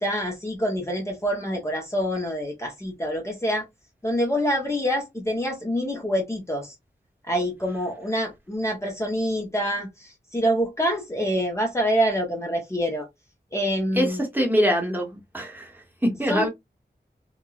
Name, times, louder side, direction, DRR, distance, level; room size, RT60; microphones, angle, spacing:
voice 1, 0.0-3.6 4.0-6.8 7.3-13.1 13.5-14.2 16.3-16.5, equal, 15° left, 0.7 m, -26 dB
voice 2, 14.0-15.7 16.0-16.5, equal, 10° right, 0.9 m, -23 dB
2.9 x 2.2 x 2.3 m
wide cardioid pair, 65°, 18 cm